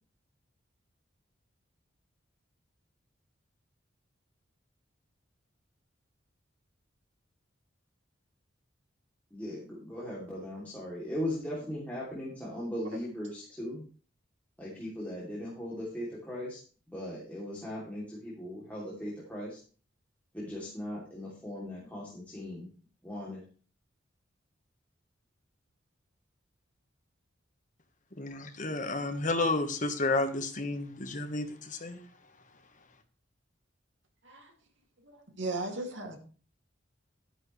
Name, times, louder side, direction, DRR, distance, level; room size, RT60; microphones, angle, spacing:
voice 1, 9.3-13.9 14.6-16.6 16.9-19.6 20.3-22.7 23.0-23.4, left 1 dB, 10° left, 3.0 m, -38 dB
voice 2, 28.1-32.0, left 2 dB, 40° left, 1.4 m, -31 dB
voice 3, 35.0-36.2, right 2 dB, 70° right, 2.6 m, -37 dB
12.5 x 9.9 x 3.3 m
head